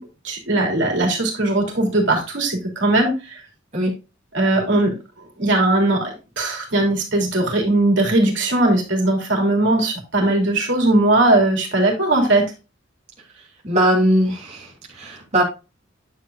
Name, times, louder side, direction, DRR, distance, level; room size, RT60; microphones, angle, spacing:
voice 1, 0.2-3.4 4.3-4.9 5.4-6.1 6.4-12.4, right 2 dB, 70° right, 1 dB, 3.2 m, -19 dB
voice 2, 13.6-15.4, right 1 dB, 35° right, -3 dB, 2.9 m, -20 dB
10.0 x 7.8 x 2.3 m, 0.29 s
head